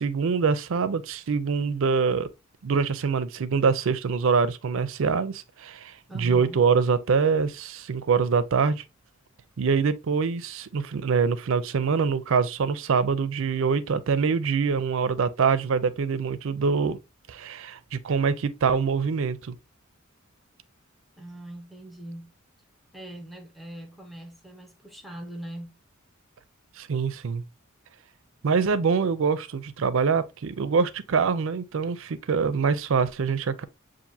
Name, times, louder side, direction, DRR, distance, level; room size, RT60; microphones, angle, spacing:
voice 1, 0.0-2.3 2.6-8.8 9.6-17.0 17.3-19.5 26.8-27.4 28.4-33.6, right 5 dB, 65° right, 0.4 m, -24 dB
voice 2, 6.1-6.6 21.2-22.3 22.9-25.8, right 1 dB, ahead, 0.6 m, -41 dB
7.1 x 2.6 x 2.6 m
head